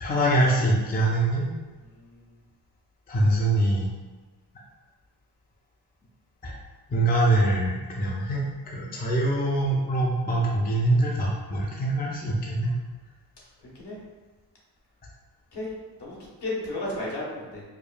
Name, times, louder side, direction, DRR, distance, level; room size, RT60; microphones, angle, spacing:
voice 1, 0.0-1.5 3.1-3.9 6.4-6.5 6.9-12.7, right 1 dB, 20° left, -4 dB, 0.4 m, -24 dB
voice 2, 1.8-2.3 13.7-14.0 15.5-15.7 16.0-17.6, left 2 dB, 65° left, -5 dB, 1.1 m, -34 dB
4.8 x 2.2 x 2.4 m, 1.3 s
wide cardioid pair, 155°, 44 cm